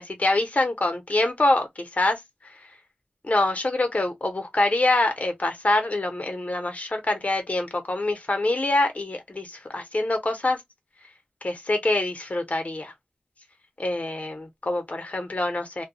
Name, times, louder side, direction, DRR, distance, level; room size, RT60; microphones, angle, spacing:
voice 1, 0.0-2.2 3.2-10.6 11.4-12.9 13.8-15.9, left 2 dB, 55° left, 0.8 m, -25 dB
2.2 x 2.1 x 2.7 m
wide cardioid pair, 40°, 3 cm